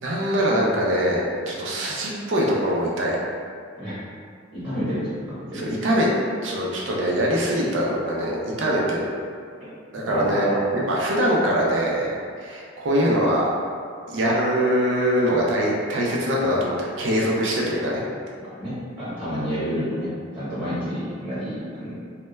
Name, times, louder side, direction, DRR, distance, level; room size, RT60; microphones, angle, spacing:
voice 1, 0.0-3.2 5.5-6.1 6.4-9.1 9.9-13.4 14.1-18.0, equal, 70° right, -3 dB, 0.4 m, -23 dB
voice 2, 4.5-5.2 5.5-5.8 10.0-10.6 18.6-21.9, equal, 25° right, -14 dB, 0.9 m, -29 dB
2.2 x 2.1 x 3.0 m, 2.2 s
head